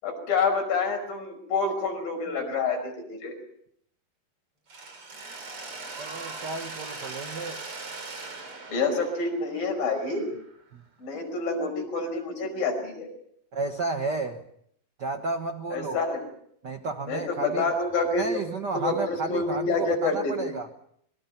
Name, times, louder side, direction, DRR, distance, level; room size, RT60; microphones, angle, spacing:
voice 1, 0.0-3.4 8.7-10.3 11.0-13.1 15.7-16.3 17.1-20.3, left 3 dB, 80° left, 3 dB, 7.0 m, -28 dB
Mechanisms, 4.7-10.6, right 3 dB, 40° right, 3.9 m, -40 dB
voice 2, 6.0-7.6 10.7-10.8 13.5-14.4 15.0-16.0 16.6-17.7 18.2-20.7, right 3 dB, 65° right, 6 dB, 1.0 m, -32 dB
26.5 x 22.5 x 5.9 m, 0.69 s
omnidirectional pair, 4.0 m